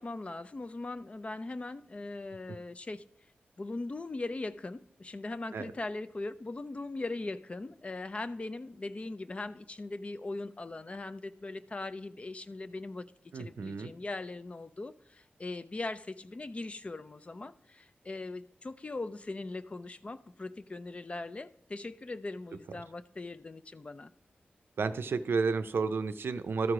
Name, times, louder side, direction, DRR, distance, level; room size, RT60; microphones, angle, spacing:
voice 1, 0.0-3.0 3.6-13.1 13.3-24.1, left 2 dB, 35° left, 0.4 m, -40 dB
voice 2, 13.3-13.9 24.8-26.7, right 4 dB, 75° right, 0.5 m, -31 dB
13.0 x 4.7 x 4.9 m
wide cardioid pair, 110°, 4 cm